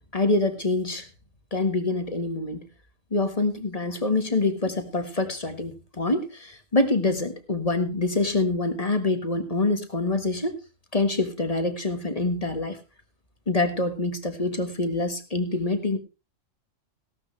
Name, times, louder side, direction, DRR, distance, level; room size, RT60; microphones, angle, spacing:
voice 1, 0.1-1.1 1.5-2.6 3.1-10.6 10.9-12.8 13.5-16.0, left 2 dB, 30° left, 8 dB, 1.6 m, -25 dB
16.5 x 12.5 x 3.3 m, 0.29 s
omnidirectional pair, 1.3 m